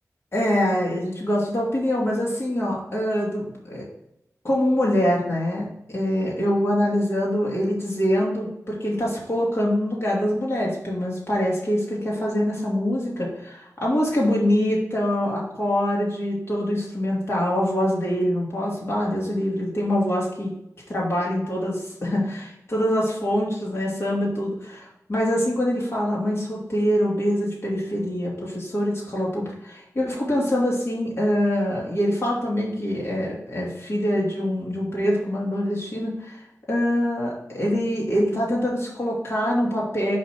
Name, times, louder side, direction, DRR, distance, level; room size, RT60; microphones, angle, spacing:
voice 1, 0.3-3.8 4.4-20.5 20.9-36.4 36.7-40.2, equal, 50° left, -4 dB, 2.6 m, -24 dB
5.7 x 5.3 x 6.3 m, 0.82 s
wide cardioid pair, 105°, 6 cm